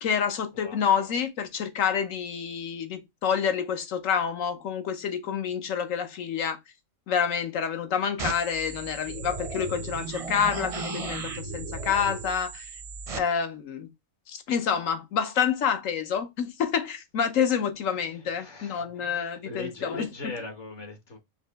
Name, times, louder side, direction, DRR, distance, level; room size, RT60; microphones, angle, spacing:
voice 1, 0.0-6.6 7.1-12.7 13.1-13.9 14.3-20.1, left 7 dB, 75° left, 1.2 m, -28 dB
sound 1, 8.2-13.2, right 4 dB, 40° right, 0.5 m, -35 dB
voice 2, 17.9-21.2, left 2 dB, 60° left, 1.4 m, -41 dB
4.7 x 3.0 x 3.4 m
omnidirectional pair, 1.4 m